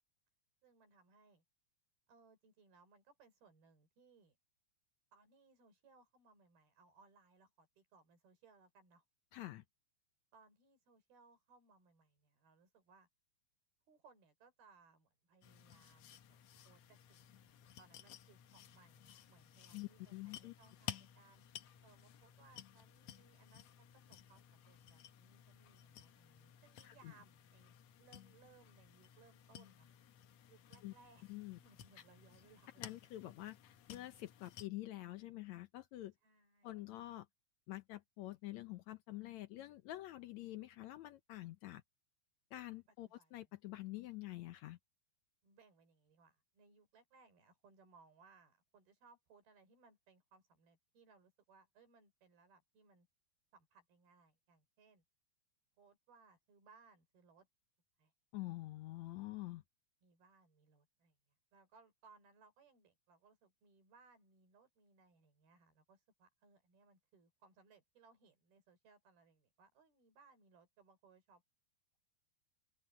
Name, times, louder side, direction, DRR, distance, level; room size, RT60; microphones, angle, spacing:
voice 1, 0.6-1.4 2.1-4.4 5.1-9.0 10.3-13.1 13.9-21.4 21.8-29.9 30.5-31.3 31.6-32.8 36.2-36.8 43.0-43.5 45.4-53.1 53.5-55.0 55.8-57.5 58.0-58.1 60.0-61.2 61.5-71.4, right 4 dB, 90° right, 6.8 m, -67 dB
voice 2, 9.3-9.6 19.7-20.5 26.8-27.1 30.8-30.9 31.3-31.6 32.8-36.1 36.6-37.3 37.7-41.8 42.5-44.8 58.3-59.6, left 16 dB, 90° left, 1.6 m, -47 dB
sound 1, 15.4-34.7, left 10 dB, 70° left, 1.6 m, -56 dB
open air
omnidirectional pair, 4.2 m